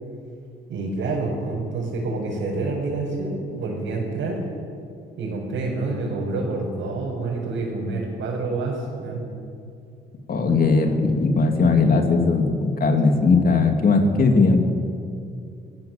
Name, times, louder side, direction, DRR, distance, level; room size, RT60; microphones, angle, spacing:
voice 1, 0.7-4.4 5.2-9.2 13.0-13.2, right 3 dB, 75° right, -5 dB, 5.3 m, -27 dB
voice 2, 10.3-14.6, left 4 dB, 45° left, 4 dB, 3.2 m, -18 dB
25.5 x 16.0 x 7.7 m, 2.5 s
cardioid pair, 90°, 20 cm